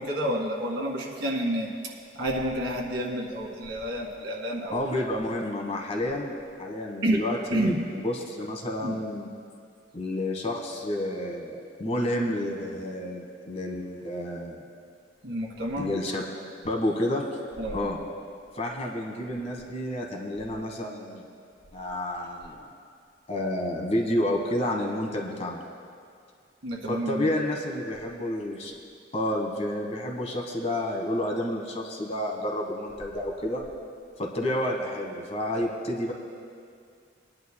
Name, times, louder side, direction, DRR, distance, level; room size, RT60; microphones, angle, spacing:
voice 1, 0.0-4.9 7.0-7.2 7.5-7.9 8.8-9.0 15.2-15.9 17.6-17.8 26.6-27.3, right 1 dB, 70° right, -1 dB, 2.0 m, -29 dB
voice 2, 4.7-6.3 6.6-9.3 9.9-14.6 15.8-16.3 16.6-17.4 17.7-18.0 18.5-21.2 21.7-22.6 23.3-25.6 26.9-28.7 29.1-33.6 34.2-36.1, left 1 dB, 35° left, 1 dB, 1.4 m, -30 dB
23.0 x 10.5 x 2.2 m, 2.3 s
head